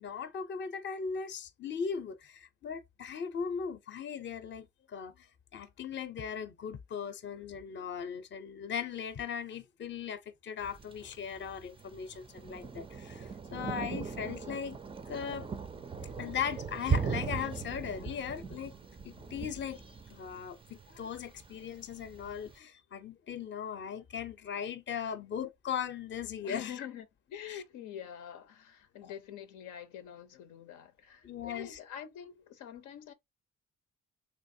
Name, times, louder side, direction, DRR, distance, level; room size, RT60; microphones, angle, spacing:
voice 1, 0.0-5.3 5.5-14.8 15.1-15.5 16.0-18.7 19.0-19.8 20.1-26.9 27.5-27.6 29.0-29.1 31.2-31.8, left 7 dB, 40° left, 0.5 m, -38 dB
Thunder, 10.6-22.5, right 5 dB, 20° right, 0.3 m, -39 dB
voice 2, 26.4-33.1, left 9 dB, 90° left, 0.6 m, -45 dB
3.4 x 2.9 x 2.6 m
cardioid pair, 90°, 30 cm